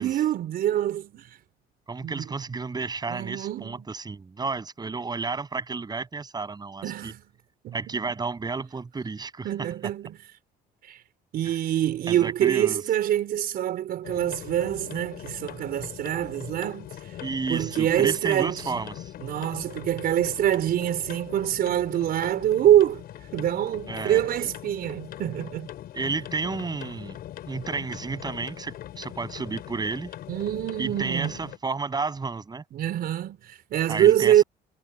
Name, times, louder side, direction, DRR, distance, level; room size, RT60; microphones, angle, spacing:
voice 1, 0.0-1.4 2.0-2.2 3.1-3.9 6.8-7.2 7.6-8.0 9.4-10.2 10.8-11.0 11.3-17.2 17.5-18.8 19.2-23.0 23.3-25.7 30.3-31.4 32.7-34.4, right 11 dB, 65° right, 4.8 m, -25 dB
voice 2, 1.9-7.1 7.7-9.5 11.4-11.6 12.1-12.8 17.2-19.1 23.9-24.2 25.9-27.2 27.5-30.1 30.8-32.6 33.9-34.4, right 4 dB, 25° right, 6.7 m, -32 dB
sound 1, 14.0-31.6, left 12 dB, 65° left, 4.5 m, -41 dB
cardioid pair, 110°, 17 cm